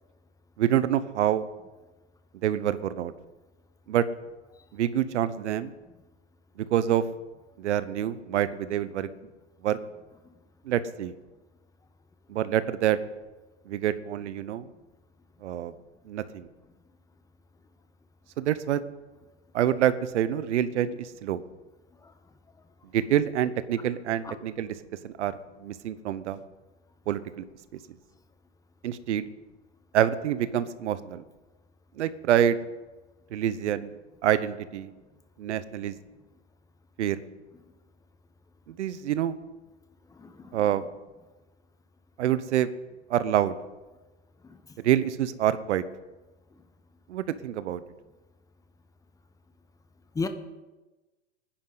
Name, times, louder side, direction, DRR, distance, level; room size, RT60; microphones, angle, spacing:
voice 1, 0.6-1.4 2.4-3.1 3.9-4.0 4.7-5.7 6.6-7.0 7.6-9.1 9.6-9.8 10.6-11.1 12.3-13.0 13.7-14.7 15.4-15.7 16.1-16.5 18.4-18.8 19.5-21.4 22.9-24.7 25.0-25.3 25.6-26.4 27.1-27.4 28.8-29.2 29.9-31.2 32.0-32.6 33.3-34.0 34.2-34.9 35.4-35.9 37.0-37.2 38.7-39.4 40.5-40.8 42.2-42.7 43.1-43.6 44.8-45.8 47.1-47.8, right 11 dB, 75° right, 14 dB, 1.1 m, -26 dB
voice 2, 40.2-40.6 44.4-44.6 50.1-50.3, left 4 dB, 10° left, 8 dB, 1.1 m, -33 dB
24.5 x 10.5 x 4.0 m, 1.1 s
hypercardioid pair, 130°, 36 cm